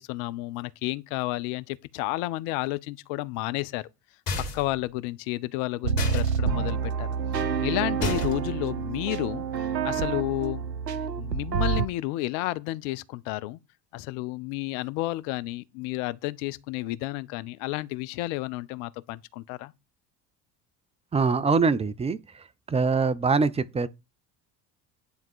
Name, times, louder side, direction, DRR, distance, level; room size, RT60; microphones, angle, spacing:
voice 1, 0.0-3.9 4.5-7.1 7.6-10.6 11.2-13.6 13.9-19.7, left 18 dB, 50° left, 0.7 m, -31 dB
sound 1, 4.3-4.8 6.0-6.3 8.0-8.5, left 3 dB, 75° left, 3.1 m, -32 dB
sound 2, 5.8-11.9, right 6 dB, 90° right, 0.6 m, -28 dB
voice 2, 21.1-22.2 22.7-23.9, right 4 dB, 15° right, 0.5 m, -23 dB
10.5 x 3.6 x 7.2 m
figure-of-eight pair, 60°, 48 cm